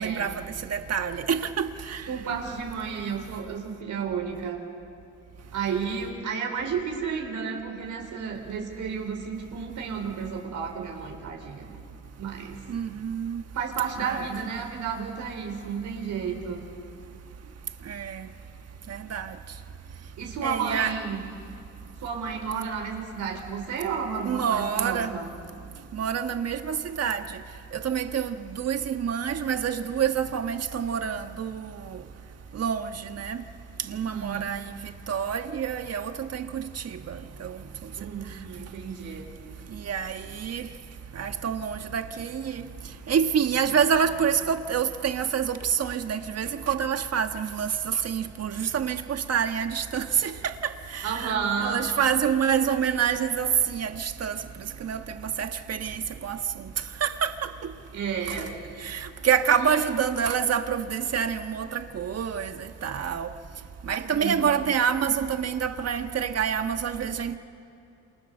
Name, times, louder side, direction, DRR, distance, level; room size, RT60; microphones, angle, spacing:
voice 1, 0.0-2.1 12.7-13.4 14.0-14.3 17.9-18.3 18.9-19.4 20.4-21.0 24.2-25.1 25.9-27.2 27.7-32.0 32.5-33.4 33.9-37.6 39.7-40.7 41.1-42.6 43.1-54.4 54.8-55.0 55.4-56.7 57.0-57.5 58.3-58.4 58.8-63.3 63.9-67.4, right 7 dB, 55° right, 1.4 m, -27 dB
voice 2, 2.1-4.6 5.5-11.7 12.2-12.6 13.5-16.7 20.2-21.2 22.0-25.3 34.0-34.5 38.0-39.3 51.0-51.9 57.9-58.6 59.6-59.8 64.0-64.5, right 6 dB, 75° right, 4.3 m, -32 dB
28.5 x 27.5 x 6.8 m
cardioid pair, 110°, 30 cm